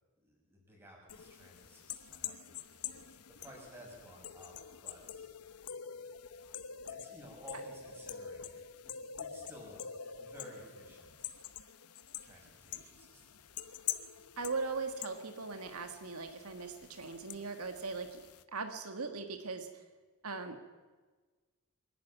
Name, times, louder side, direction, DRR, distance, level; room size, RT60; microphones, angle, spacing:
voice 1, 0.2-5.3 6.9-11.3 12.2-13.5, equal, 10° right, -2 dB, 6.4 m, -55 dB
sound 1, 1.1-18.4, left 9 dB, 90° left, 1.0 m, -46 dB
voice 2, 14.4-18.2 18.5-19.7 20.2-20.6, right 4 dB, 80° right, 6 dB, 1.8 m, -39 dB
24.5 x 11.5 x 9.6 m, 1.3 s
head